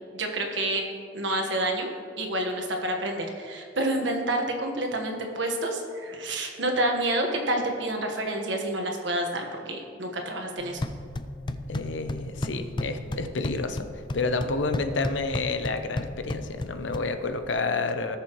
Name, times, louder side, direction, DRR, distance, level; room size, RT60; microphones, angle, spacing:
voice 1, 0.1-0.9 1.1-10.9, right 1 dB, 75° right, 2 dB, 1.5 m, -28 dB
sound 1, 10.6-17.6, left 1 dB, 25° left, 0.4 m, -34 dB
voice 2, 11.7-13.9 14.1-18.2, left 3 dB, 75° left, 7 dB, 0.8 m, -29 dB
18.0 x 6.8 x 3.1 m, 2.3 s
head